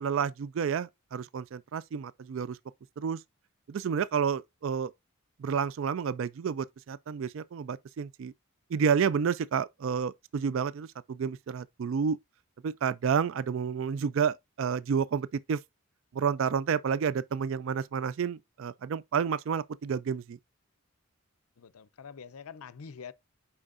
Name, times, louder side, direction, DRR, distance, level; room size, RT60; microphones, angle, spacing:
voice 1, 0.0-2.6 3.0-3.2 3.7-4.9 5.4-8.3 8.7-12.2 12.6-15.6 16.1-20.4, right 6 dB, 60° right, 0.3 m, -30 dB
voice 2, 21.6-23.1, left 6 dB, 80° left, 0.5 m, -45 dB
8.7 x 4.8 x 2.5 m
head